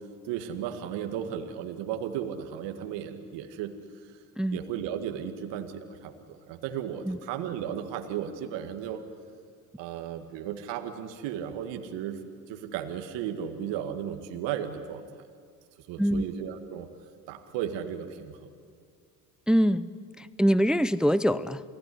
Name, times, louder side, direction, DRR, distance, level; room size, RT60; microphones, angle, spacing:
voice 1, 0.2-3.7 4.0-4.1 4.5-9.0 9.8-12.2 12.5-15.1 15.9-16.9 17.3-18.4, right 9 dB, 65° right, 6 dB, 2.0 m, -35 dB
voice 2, 19.5-19.9 20.2-21.6, equal, ahead, 17 dB, 0.6 m, -24 dB
28.5 x 18.5 x 10.0 m, 2.1 s
hypercardioid pair, 65°, 47 cm